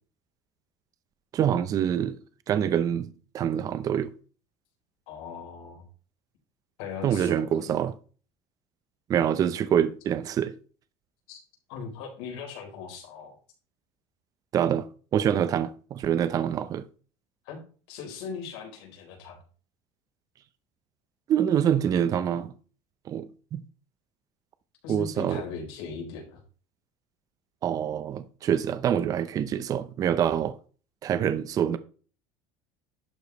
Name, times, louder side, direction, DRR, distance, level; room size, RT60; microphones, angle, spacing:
voice 1, 1.3-2.2 2.5-4.1 7.0-7.9 9.1-10.6 14.5-14.9 15.1-16.8 21.3-22.5 23.1-23.6 24.9-25.4 27.6-30.5 31.0-31.8, right 9 dB, 30° right, 0.5 m, -25 dB
voice 2, 5.1-5.9 6.8-7.7 11.3-11.4 11.7-13.4 17.4-17.6 17.9-19.4 24.8-26.4, left 6 dB, 90° left, 4.2 m, -39 dB
11.5 x 4.9 x 4.0 m
cardioid pair, 165°, 13 cm